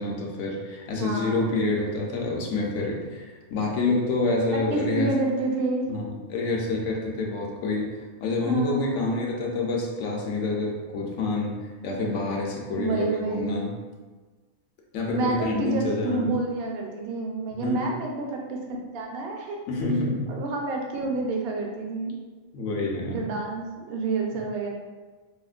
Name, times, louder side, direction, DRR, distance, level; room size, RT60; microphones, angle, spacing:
voice 1, 0.0-3.3 3.5-5.1 5.9-13.7 14.9-16.3 17.6-17.9 19.7-20.4 22.5-23.2, left 2 dB, 65° left, -1 dB, 0.9 m, -27 dB
voice 2, 0.9-1.5 4.7-5.8 8.4-9.2 12.8-13.7 15.1-19.6 20.3-22.1 23.1-24.7, right 3 dB, 60° right, 0 dB, 0.6 m, -29 dB
4.9 x 2.1 x 2.4 m, 1.3 s
omnidirectional pair, 1.5 m